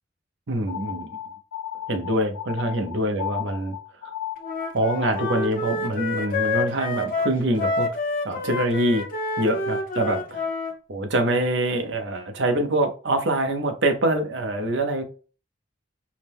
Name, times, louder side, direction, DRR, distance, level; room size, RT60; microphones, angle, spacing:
voice 1, 0.5-1.2 1.9-3.8 4.0-4.1 4.7-7.9 8.2-9.1 9.4-10.4 10.9-15.0, right 1 dB, 70° right, 0.8 m, -24 dB
sound 1, 0.7-5.6, left 11 dB, 80° left, 0.3 m, -35 dB
Wind instrument woodwind instrument, 4.4-10.8, left 3 dB, 45° left, 0.7 m, -28 dB
4.8 x 2.1 x 3.5 m
head